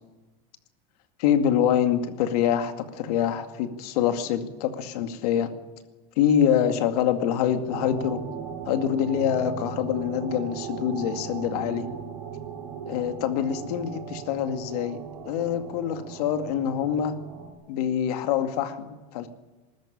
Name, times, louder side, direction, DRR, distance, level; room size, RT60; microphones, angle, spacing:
voice 1, 1.2-5.5 6.2-8.2 8.6-11.9 12.9-15.0 15.3-17.1 17.7-19.3, left 9 dB, 80° left, 8 dB, 2.3 m, -25 dB
sound 1, 7.7-17.5, right 7 dB, 80° right, 5.5 m, -38 dB
21.0 x 13.5 x 10.0 m, 1.2 s
cardioid pair, 175°, 19 cm